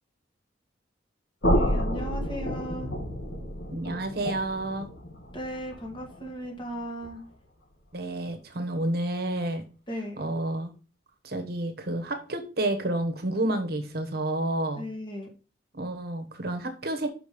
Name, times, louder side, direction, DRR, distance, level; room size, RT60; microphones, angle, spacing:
sound 1, 1.4-7.3, equal, 80° left, 1.8 m, -30 dB
voice 1, 1.5-2.9 5.3-7.2 9.9-10.3 14.8-15.3, equal, 25° left, 1 dB, 1.8 m, -36 dB
voice 2, 3.7-4.9 7.9-9.7 10.2-10.7 11.2-14.8 15.7-17.1, right 1 dB, 55° right, 6 dB, 1.1 m, -30 dB
5.7 x 5.1 x 5.1 m, 0.34 s
head